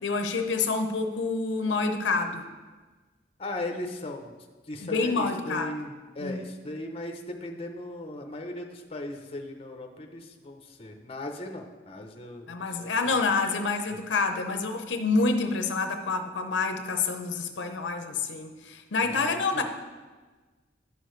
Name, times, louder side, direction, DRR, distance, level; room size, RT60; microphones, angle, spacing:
voice 1, 0.0-2.4 4.8-5.7 6.2-6.4 12.5-19.6, left 4 dB, 90° left, 6 dB, 0.6 m, -27 dB
voice 2, 3.4-4.3 4.7-13.2 13.9-14.0 19.0-19.6, left 1 dB, 35° left, 4 dB, 0.6 m, -38 dB
9.7 x 6.5 x 3.2 m, 1.3 s
head